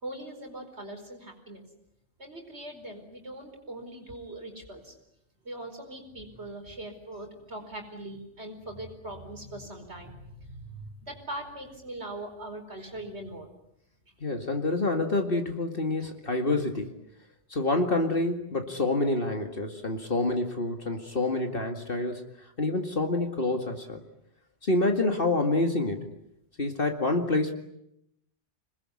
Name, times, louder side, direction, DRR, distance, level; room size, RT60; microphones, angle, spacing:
voice 1, 0.0-1.6 2.2-4.9 5.4-13.5 16.0-16.1, right 1 dB, 70° right, 3 dB, 5.1 m, -41 dB
voice 2, 14.2-17.0 17.5-22.3 22.6-24.0 24.6-26.1 26.6-27.6, left 2 dB, 50° left, 4 dB, 2.3 m, -27 dB
27.0 x 20.5 x 9.8 m, 0.80 s
omnidirectional pair, 1.2 m